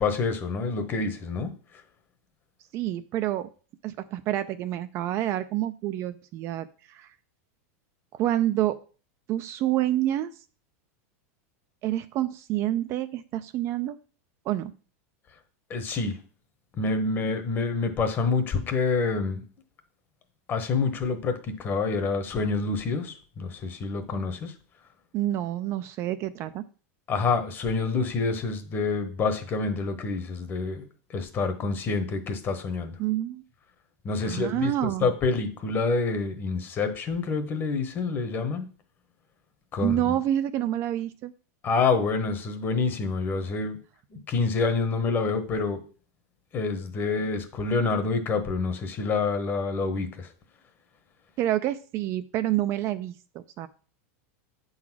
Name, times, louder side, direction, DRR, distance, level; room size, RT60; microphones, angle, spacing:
voice 1, 0.0-1.5 15.7-16.2 16.8-19.4 20.5-24.5 27.1-33.0 34.0-38.7 39.7-40.0 41.6-43.8 44.1-45.8 46.5-50.3, left 4 dB, 25° left, 9 dB, 1.0 m, -27 dB
voice 2, 2.7-3.5 3.8-7.1 8.1-8.8 9.3-10.3 11.8-14.0 14.5-14.7 25.1-26.6 33.0-33.4 34.3-35.1 39.8-41.3 51.4-53.7, right 13 dB, 35° right, 11 dB, 0.4 m, -28 dB
8.5 x 4.0 x 6.0 m, 0.39 s
supercardioid pair, 155°, 8 cm